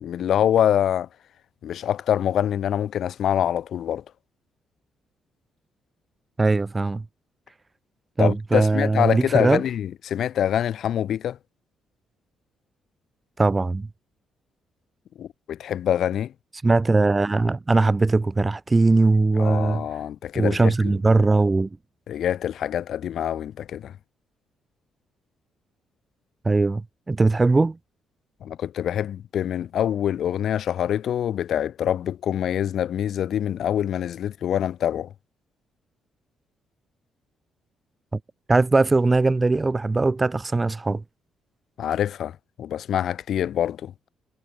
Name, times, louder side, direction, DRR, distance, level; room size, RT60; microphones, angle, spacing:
voice 1, 0.0-1.1 1.6-4.0 8.2-11.4 15.2-16.3 19.4-20.9 22.1-23.9 28.4-35.1 41.8-42.3 42.6-43.9, left 10 dB, 65° left, 0.6 m, -25 dB
voice 2, 6.4-7.0 8.2-9.6 13.4-13.9 16.6-19.8 20.4-21.7 26.4-27.8 38.5-41.0, right 3 dB, 20° right, 0.8 m, -20 dB
cardioid pair, 90°, 0 cm